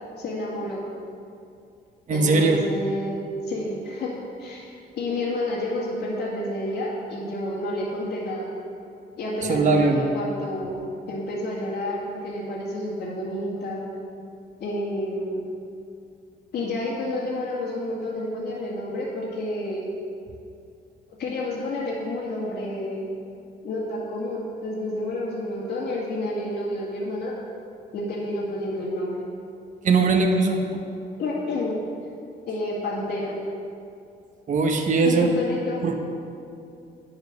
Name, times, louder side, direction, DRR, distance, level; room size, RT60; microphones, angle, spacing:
voice 1, 0.2-0.8 2.1-3.2 3.4-4.7 5.0-8.5 9.2-13.9 14.6-15.5 16.5-19.8 21.2-23.0 23.6-27.3 27.9-29.2 31.2-31.8 32.5-33.3 35.0-35.8, left 1 dB, 70° left, -6 dB, 2.1 m, -29 dB
voice 2, 2.1-2.6 9.5-10.0 29.8-30.6 34.5-35.3 35.8-36.0, right 3 dB, 45° right, 3 dB, 1.0 m, -20 dB
10.0 x 7.2 x 6.5 m, 2.6 s
cardioid pair, 125°, 18 cm